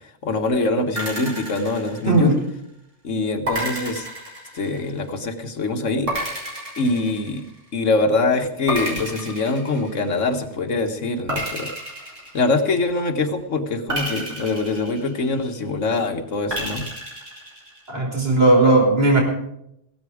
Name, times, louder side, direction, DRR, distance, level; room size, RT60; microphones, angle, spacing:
voice 1, 0.2-2.3 3.0-4.1 4.5-6.1 6.8-7.4 7.7-11.7 12.3-16.9, left 3 dB, 85° left, 7 dB, 1.8 m, -23 dB
sound 1, 1.0-2.5 3.5-5.1 6.1-7.8 8.7-10.3 11.3-13.0 13.9-15.6 16.5-17.9, right 1 dB, 80° right, 6.6 m, -31 dB
voice 2, 17.9-19.2, right 2 dB, 55° right, 0 dB, 5.3 m, -16 dB
17.0 x 13.0 x 5.0 m, 0.77 s
omnidirectional pair, 1.3 m